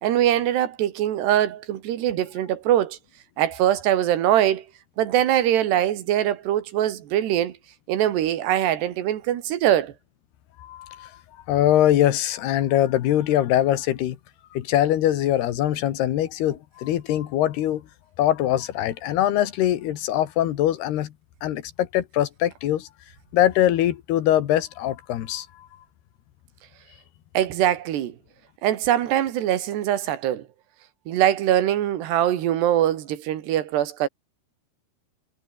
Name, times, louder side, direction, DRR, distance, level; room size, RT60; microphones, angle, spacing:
voice 1, 0.0-3.0 3.4-4.7 5.0-7.6 7.9-9.9 27.4-28.2 28.6-30.5 31.1-34.1, right 11 dB, 90° right, 4.0 m, -22 dB
voice 2, 10.6-11.2 11.5-14.2 14.5-17.9 18.2-21.1 21.4-22.9 23.3-25.7, left 12 dB, 80° left, 3.6 m, -22 dB
omnidirectional pair, 4.7 m